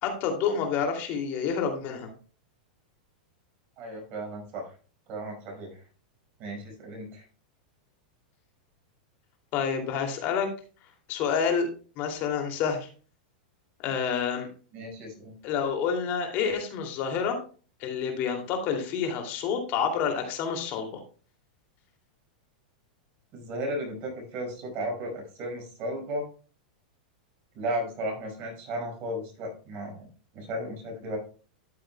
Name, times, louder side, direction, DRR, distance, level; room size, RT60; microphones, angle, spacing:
voice 1, 0.0-2.1 9.5-10.5 11.1-11.7 12.0-12.9 13.8-14.5 15.4-17.4 17.8-21.0, left 6 dB, 45° left, 4 dB, 2.5 m, -28 dB
voice 2, 3.8-4.6 5.1-5.8 6.4-7.2 14.7-15.4 23.3-26.3 27.5-30.1 30.3-31.2, right 1 dB, 45° right, 2 dB, 5.1 m, -34 dB
13.0 x 7.8 x 2.2 m, 0.38 s
hypercardioid pair, 125°, 4 cm